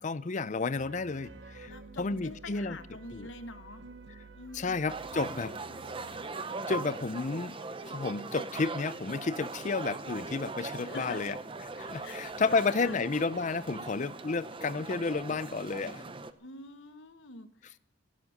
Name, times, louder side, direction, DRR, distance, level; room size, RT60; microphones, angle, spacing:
voice 1, 0.0-1.7 2.0-2.8 3.1-3.3 4.5-5.6 6.7-7.6 7.8-11.4 11.8-16.0, left 4 dB, 40° left, 0.5 m, -31 dB
sound 1, 0.8-6.2, right 3 dB, 60° right, 0.9 m, -51 dB
voice 2, 1.6-3.8 4.3-4.8 10.8-11.4 12.0-13.0 16.4-17.8, left 2 dB, 70° left, 1.1 m, -46 dB
sound 2, 4.9-16.3, right 3 dB, 25° right, 0.7 m, -40 dB
16.5 x 7.5 x 9.4 m
head